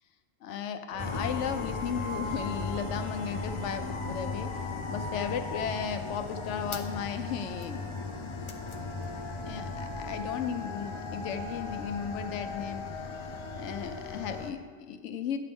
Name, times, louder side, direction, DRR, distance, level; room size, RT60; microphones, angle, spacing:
voice 1, 0.4-4.5 4.9-7.9 9.5-12.8 13.5-15.4, left 7 dB, 70° left, 8 dB, 0.9 m, -35 dB
sound 1, 0.9-12.0, right 1 dB, 65° right, 3.0 m, -55 dB
sound 2, 1.0-14.5, left 3 dB, 50° left, 0.3 m, -36 dB
sound 3, 6.8-10.2, right 3 dB, 25° right, 0.5 m, -54 dB
9.4 x 6.7 x 3.5 m, 1.5 s
omnidirectional pair, 1.3 m